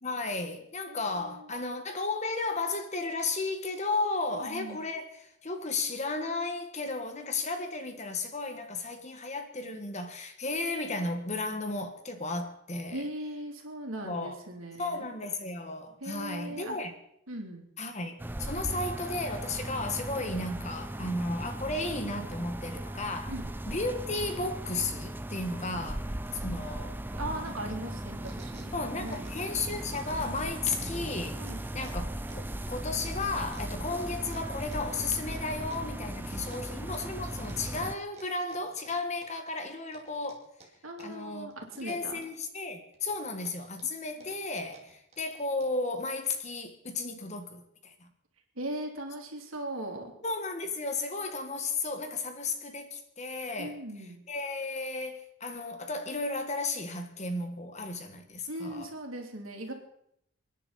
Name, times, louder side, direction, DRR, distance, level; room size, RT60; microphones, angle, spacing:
voice 1, 0.0-13.1 14.0-14.4 14.8-16.9 17.8-23.3 23.7-26.1 26.3-27.0 28.7-31.4 31.7-40.5 41.0-41.5 41.7-48.1 50.2-53.8 54.3-58.9, left 3 dB, 35° left, 1.5 m, -34 dB
voice 2, 0.9-1.5 4.3-4.8 12.9-15.0 16.0-16.8 17.3-17.7 23.3-23.5 26.5-29.3 31.4-31.6 36.5-36.6 40.8-42.2 48.5-50.1 53.6-54.2 58.5-59.7, right 1 dB, 80° right, 3.2 m, -39 dB
sound 1, 18.2-38.0, right 1 dB, 10° right, 0.5 m, -38 dB
sound 2, 27.9-29.6 29.9-31.0 31.4-36.0 36.5-37.1 37.4-39.5 39.9-41.2 41.5-42.5 42.9-45.9, right 3 dB, 30° right, 2.6 m, -55 dB
29.0 x 10.0 x 4.2 m
head